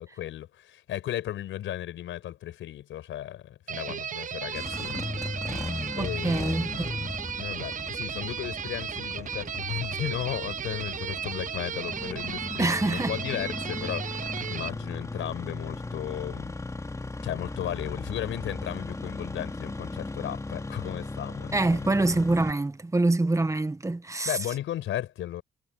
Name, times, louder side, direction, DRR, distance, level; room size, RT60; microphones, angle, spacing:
voice 1, 0.0-5.0 6.0-16.5 17.2-21.9 24.2-25.4, left 12 dB, 80° left, 5.0 m, -35 dB
sound 1, 3.7-14.7, right 8 dB, 40° right, 0.7 m, -35 dB
Engine starting, 4.4-22.5, left 2 dB, 15° left, 2.5 m, -37 dB
voice 2, 6.0-7.1 12.6-13.2 21.5-24.4, right 2 dB, 15° right, 1.5 m, -26 dB
cardioid pair, 90°, 20 cm